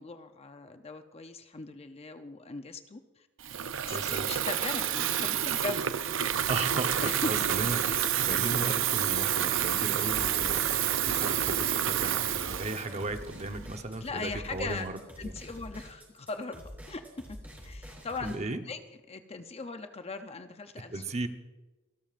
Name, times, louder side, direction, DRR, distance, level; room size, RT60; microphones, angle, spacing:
voice 1, 0.0-3.3 3.8-6.2 7.0-7.3 8.0-8.2 14.0-14.8 15.2-17.1 17.6-18.8 19.1-21.0, left 3 dB, 30° left, 8 dB, 0.6 m, -39 dB
Water tap faucet / Fill (with liquid), 3.4-13.7, right 9 dB, 65° right, 0.6 m, -29 dB
voice 2, 3.9-4.3 6.5-15.3 18.2-18.6 20.8-21.3, right 2 dB, 35° right, 6 dB, 1.0 m, -36 dB
sound 1, 10.0-18.4, equal, 10° right, 4.3 m, -46 dB
28.0 x 12.5 x 2.5 m, 1.1 s
head